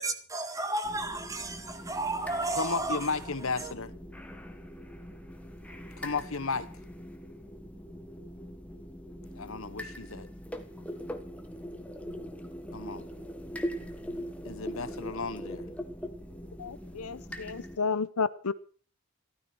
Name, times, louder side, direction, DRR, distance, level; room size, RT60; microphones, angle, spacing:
voice 1, 0.0-3.0 3.6-3.7, right 2 dB, 15° right, 1.7 m, -33 dB
sound 1, 0.8-17.8, equal, 5° left, 1.5 m, -42 dB
voice 2, 2.6-3.9 6.0-6.7 9.4-10.3 12.7-13.0 14.4-15.6, left 4 dB, 70° left, 1.2 m, -34 dB
voice 3, 16.6-18.5, left 5 dB, 90° left, 0.9 m, -32 dB
15.5 x 13.5 x 6.2 m
head